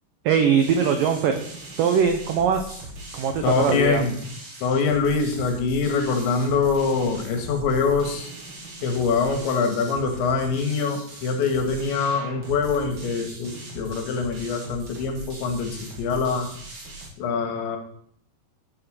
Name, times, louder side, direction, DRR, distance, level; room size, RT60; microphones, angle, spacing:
voice 1, 0.2-1.4 1.8-2.9 3.1-4.0, right 7 dB, 85° right, 6 dB, 1.9 m, -21 dB
sound 1, 0.6-17.1, right 2 dB, 35° right, 2.6 m, -40 dB
voice 2, 3.4-4.1 4.6-8.3 8.8-15.7 16.0-16.5 17.2-17.8, left 4 dB, 80° left, 5 dB, 3.8 m, -24 dB
11.0 x 7.5 x 6.4 m, 0.64 s
omnidirectional pair, 5.3 m